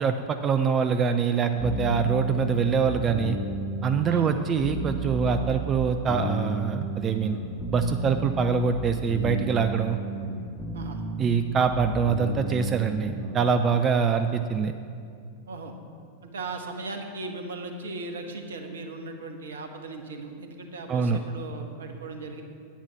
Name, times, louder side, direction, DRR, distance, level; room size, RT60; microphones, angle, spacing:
voice 1, 0.0-3.4 3.8-7.4 7.7-10.0 11.2-14.7 20.9-21.2, right 6 dB, 25° right, 8 dB, 0.5 m, -24 dB
sound 1, 1.6-13.5, right 1 dB, 5° right, 2.8 m, -32 dB
voice 2, 10.7-11.0 15.5-15.8 16.2-22.4, right 3 dB, 65° right, 5 dB, 1.3 m, -37 dB
10.0 x 9.0 x 7.0 m, 2.4 s
figure-of-eight pair, 90°, 0 cm